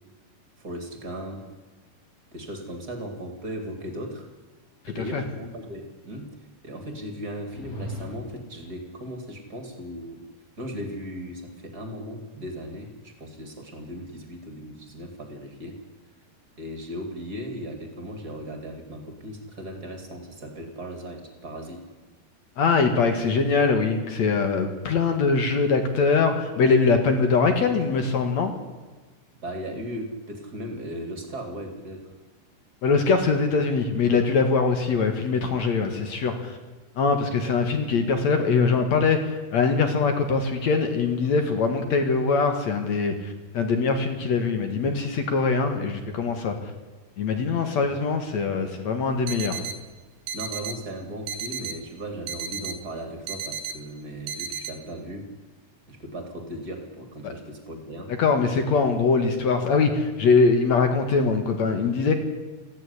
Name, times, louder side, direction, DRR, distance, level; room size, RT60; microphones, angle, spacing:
voice 1, 0.6-1.4 2.3-4.3 4.9-10.2 10.6-15.8 16.6-21.9 29.4-32.1 47.9-48.0 50.3-55.3 55.9-58.1, equal, 25° right, 5 dB, 2.5 m, -37 dB
sound 1, 7.4-8.5, equal, 35° left, 1.5 m, -38 dB
voice 2, 22.6-28.5 32.8-36.6 37.0-46.7 47.2-49.6 57.2-57.3 58.2-62.1, left 4 dB, 55° left, 7 dB, 2.1 m, -22 dB
sound 2, 49.3-49.8 50.3-50.8 51.3-51.8 52.3-52.8 53.3-53.8 54.3-54.7, right 6 dB, 80° right, 4.0 m, -33 dB
18.0 x 15.0 x 9.8 m, 1.3 s
omnidirectional pair, 5.3 m